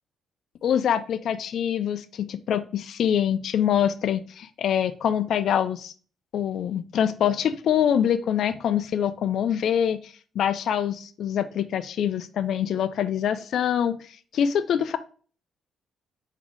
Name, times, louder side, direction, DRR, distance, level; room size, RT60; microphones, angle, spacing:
voice 1, 0.6-5.9 6.3-15.0, left 9 dB, 70° left, 12 dB, 0.3 m, -25 dB
3.9 x 3.6 x 3.0 m, 0.40 s
cardioid pair, 90°, 0 cm